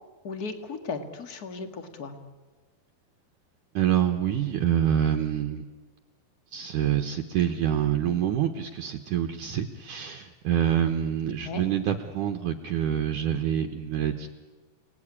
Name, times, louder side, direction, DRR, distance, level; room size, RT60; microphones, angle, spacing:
voice 1, 0.2-2.2 11.4-11.6, left 4 dB, 35° left, 7 dB, 1.7 m, -36 dB
voice 2, 3.7-5.6 6.5-14.3, right 10 dB, 65° right, 5 dB, 2.3 m, -26 dB
30.0 x 19.0 x 10.0 m, 1.3 s
omnidirectional pair, 4.5 m